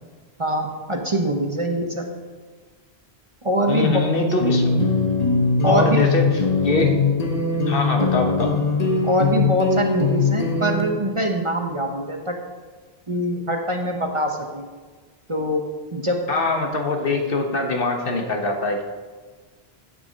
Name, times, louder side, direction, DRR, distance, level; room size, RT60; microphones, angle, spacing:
voice 1, 0.4-2.0 3.4-4.0 5.6-6.0 9.0-12.3 13.1-14.7 15.3-15.6 15.9-16.3, equal, 30° right, 2 dB, 0.8 m, -23 dB
voice 2, 3.7-4.9 5.6-7.0 7.5-8.6 16.3-18.8, left 2 dB, 60° left, 3 dB, 1.2 m, -23 dB
sound 1, 4.4-10.8, left 4 dB, 40° left, 1.1 m, -21 dB
8.9 x 6.9 x 5.1 m, 1.4 s
omnidirectional pair, 1.1 m